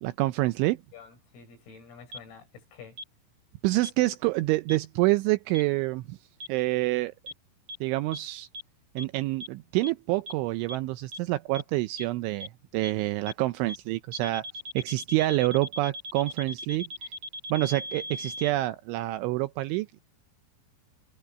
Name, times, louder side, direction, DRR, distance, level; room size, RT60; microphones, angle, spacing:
voice 1, 0.0-0.8 3.6-6.2 6.5-7.1 7.8-8.5 9.0-14.5 14.7-16.9 17.5-20.0, right 19 dB, 80° right, 2.8 m, -27 dB
voice 2, 0.9-3.0, left 6 dB, 85° left, 8.8 m, -49 dB
sound 1, 2.1-2.2 3.0-3.1 3.8-3.9 4.7-4.8 5.5-5.6 6.4-6.5 7.3-7.4 7.7-7.8 8.1-8.2 8.5-8.6 9.0-9.1 9.4-9.5 9.8-9.9 10.3-10.4 10.7-10.8 11.1-11.2 11.5-11.6 12.0-12.1 12.4-12.5 12.8-12.9 13.3-13.4 13.7-13.8 14.1-18.5, equal, 30° right, 5.4 m, -38 dB
omnidirectional pair, 5.9 m